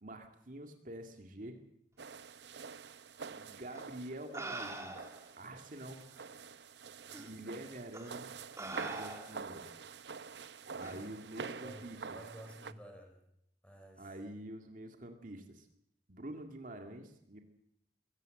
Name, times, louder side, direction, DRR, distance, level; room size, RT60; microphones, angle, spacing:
voice 1, 0.0-1.6 3.3-6.1 7.2-8.3 8.8-9.7 10.7-12.0 14.0-15.7 16.1-17.4, right 1 dB, 50° right, 5 dB, 2.1 m, -47 dB
sound 1, 2.0-12.7, right 5 dB, 80° right, 0.7 m, -47 dB
sound 2, 3.7-3.8 4.3-5.3 6.2-6.3 7.1-7.3 7.9-8.1 8.6-9.5 10.8-11.0, right 2 dB, 15° right, 2.5 m, -44 dB
voice 2, 10.7-13.2 13.6-14.1, equal, 5° left, 3 dB, 5.2 m, -53 dB
22.5 x 17.0 x 7.7 m, 0.77 s
head